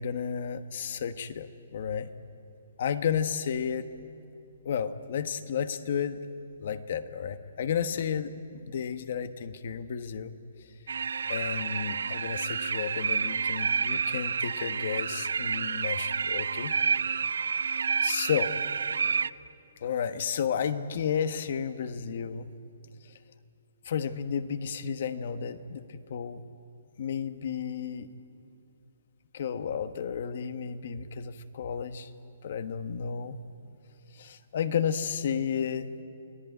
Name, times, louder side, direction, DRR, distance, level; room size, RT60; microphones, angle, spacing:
voice 1, 0.0-2.1 2.8-3.9 4.6-6.2 6.6-10.3 11.3-16.7 17.7-18.5 19.8-22.5 23.0-23.1 23.8-26.4 27.0-28.1 29.3-32.1 32.4-33.4 34.1-35.9, left 7 dB, 45° left, 11 dB, 1.3 m, -32 dB
sound 1, 10.9-19.3, right 6 dB, 85° right, 0.6 m, -29 dB
29.5 x 19.5 x 9.4 m, 2.6 s
hypercardioid pair, 170°, 0 cm